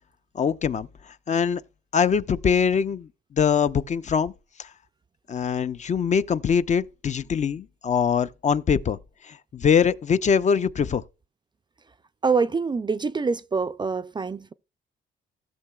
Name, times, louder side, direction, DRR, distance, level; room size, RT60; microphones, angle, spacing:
voice 1, 0.3-1.6 1.9-4.3 4.6-4.7 5.3-9.0 9.2-11.0, left 6 dB, 35° left, 0.4 m, -23 dB
voice 2, 12.2-14.5, right 4 dB, 25° right, 0.4 m, -25 dB
16.0 x 6.7 x 2.3 m
cardioid pair, 90°, 20 cm